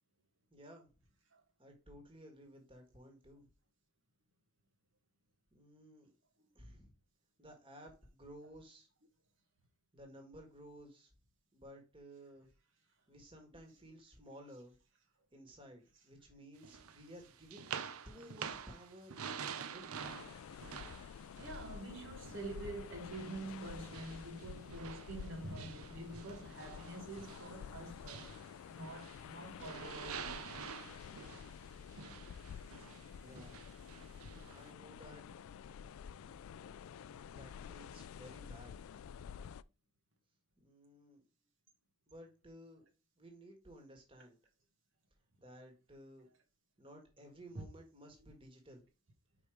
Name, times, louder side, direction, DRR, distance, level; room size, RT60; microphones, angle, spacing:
voice 1, 0.5-0.9 1.6-3.5 5.5-6.1 6.6-6.9 7.4-8.9 9.9-11.1 11.5-12.5 13.1-14.7 15.3-17.6 18.1-19.2 19.6-19.9 33.2-33.6 34.5-35.2 36.3-36.5 37.3-38.8 40.6-41.2 42.1-42.8 43.2-44.4 45.4-46.3 46.8-48.8, equal, 25° right, 1.7 m, -55 dB
sound 1, 16.6-22.7 23.1-29.3 29.6-34.7, right 7 dB, 80° right, 0.6 m, -48 dB
sound 2, 20.0-39.6, left 7 dB, 75° left, 0.3 m, -50 dB
voice 2, 21.4-28.3 28.7-30.4 35.7-35.8 47.5-47.6, right 2 dB, 60° right, 1.2 m, -46 dB
5.2 x 4.9 x 4.5 m
head